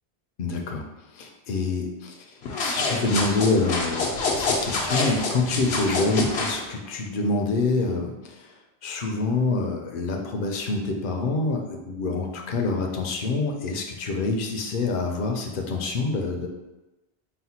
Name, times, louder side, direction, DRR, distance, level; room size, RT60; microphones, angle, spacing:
voice 1, 0.4-0.9 1.1-8.5 8.8-16.5, left 3 dB, 60° left, 2 dB, 0.7 m, -26 dB
sound 1, 2.4-6.6, left 3 dB, 85° left, 1.0 m, -27 dB
4.2 x 2.2 x 4.2 m, 1.1 s
omnidirectional pair, 1.1 m